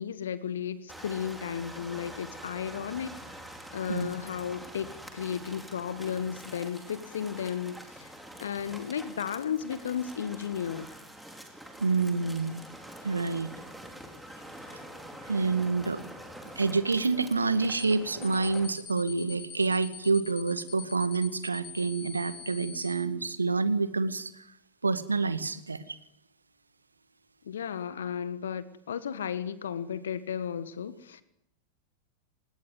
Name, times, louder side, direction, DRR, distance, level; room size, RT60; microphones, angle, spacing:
voice 1, 0.0-3.4 3.7-8.1 8.4-10.9 27.5-31.2, left 8 dB, 65° left, 15 dB, 1.4 m, -34 dB
sound 1, 0.9-18.7, right 1 dB, ahead, 4.7 m, -45 dB
voice 2, 11.8-12.6 13.0-13.5 14.7-14.9 15.3-16.0 16.6-24.5 24.8-26.0, right 4 dB, 80° right, 13 dB, 1.9 m, -28 dB
sound 2, 17.8-18.0 18.2-23.0, left 8 dB, 35° left, 4.7 m, -44 dB
26.5 x 20.0 x 9.5 m, 0.81 s
figure-of-eight pair, 90°, 0 cm